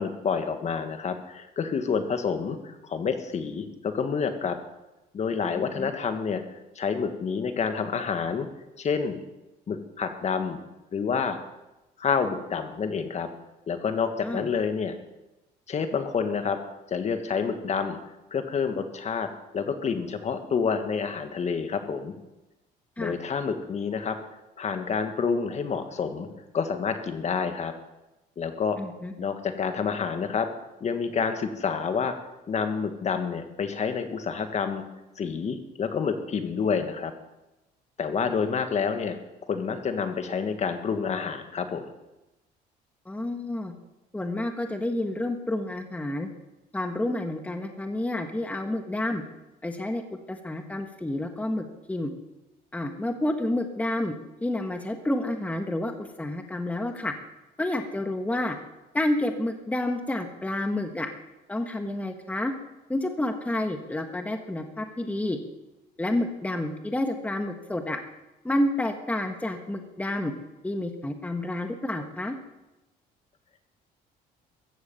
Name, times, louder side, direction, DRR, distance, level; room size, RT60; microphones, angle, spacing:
voice 1, 0.0-4.6 5.1-6.4 6.8-8.5 8.8-9.2 9.7-10.6 10.9-11.4 12.0-13.3 13.7-15.0 15.7-16.6 16.9-18.0 18.3-19.3 19.5-22.2 23.0-24.2 24.6-26.3 26.5-27.7 28.4-28.8 29.2-30.5 30.8-32.1 32.5-34.8 35.2-37.1 38.0-39.2 39.5-41.8, left 6 dB, 40° left, 7 dB, 1.8 m, -28 dB
voice 2, 5.5-5.9 14.2-14.5 23.0-23.2 28.8-29.1 43.0-43.7 44.1-46.3 46.7-49.2 49.6-50.0 50.3-52.1 52.7-54.1 54.4-57.1 57.6-58.6 58.9-61.1 61.5-62.5 62.9-65.4 66.0-68.0 68.4-70.3 70.6-72.3, left 1 dB, 10° left, 5 dB, 1.4 m, -29 dB
15.0 x 14.5 x 5.6 m, 0.99 s
cardioid pair, 110°, 17 cm